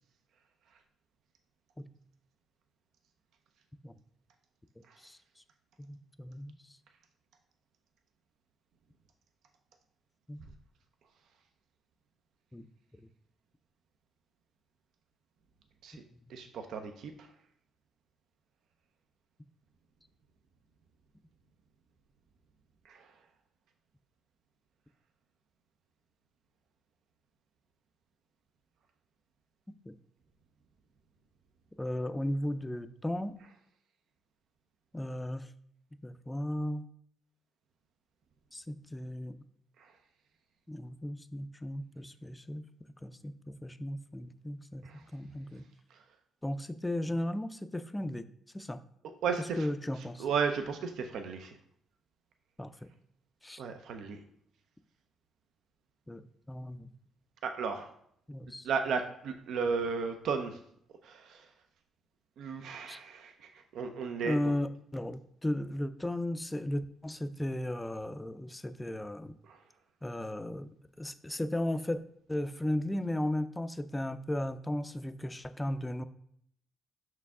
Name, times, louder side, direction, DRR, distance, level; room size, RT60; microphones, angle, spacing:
voice 1, 5.8-6.6 10.3-10.4 12.5-12.7 29.9-30.0 31.8-33.3 34.9-35.5 36.0-36.9 38.5-39.4 40.7-42.7 43.0-45.6 46.4-48.2 48.5-48.8 49.4-50.3 52.6-52.7 53.4-53.6 56.1-56.2 56.5-56.9 58.3-58.7 62.9-63.0 64.2-69.3 70.0-72.0 72.3-76.0, left 1 dB, 10° left, 12 dB, 0.4 m, -35 dB
voice 2, 16.3-17.1 22.9-23.0 44.8-45.0 49.2-49.6 50.2-51.5 53.6-54.2 57.4-57.9 58.6-60.6 61.0-61.4 62.4-63.3 63.7-64.4 69.5-69.6, right 5 dB, 75° right, 6 dB, 0.5 m, -34 dB
6.0 x 4.6 x 3.6 m, 0.68 s
cardioid pair, 90°, 0 cm